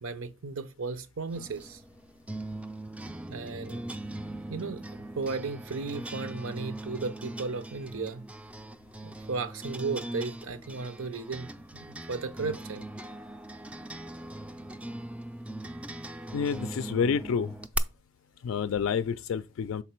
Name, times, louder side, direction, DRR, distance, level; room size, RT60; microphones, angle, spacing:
voice 1, 0.0-1.8 3.3-3.8 4.5-4.8 5.2-8.2 9.0-12.9, right 4 dB, 90° right, 0.7 m, -35 dB
sound 1, 1.3-17.8, right 1 dB, 5° right, 0.3 m, -40 dB
voice 2, 16.3-17.5 18.4-19.8, left 6 dB, 80° left, 0.3 m, -29 dB
5.7 x 4.0 x 4.4 m
head